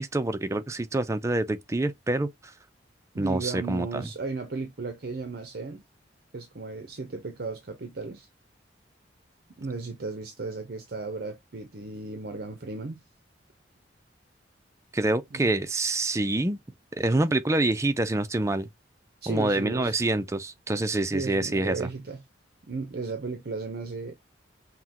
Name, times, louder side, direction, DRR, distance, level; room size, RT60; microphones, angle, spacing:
voice 1, 0.0-2.3 3.2-4.1 14.9-16.6 17.0-18.7 19.3-21.9, right 2 dB, 15° right, 0.4 m, -26 dB
voice 2, 3.1-5.8 6.3-8.3 9.6-13.0 15.3-15.6 19.2-20.0 21.1-22.2 22.7-24.1, right 3 dB, 55° right, 0.6 m, -35 dB
5.8 x 2.1 x 2.8 m
head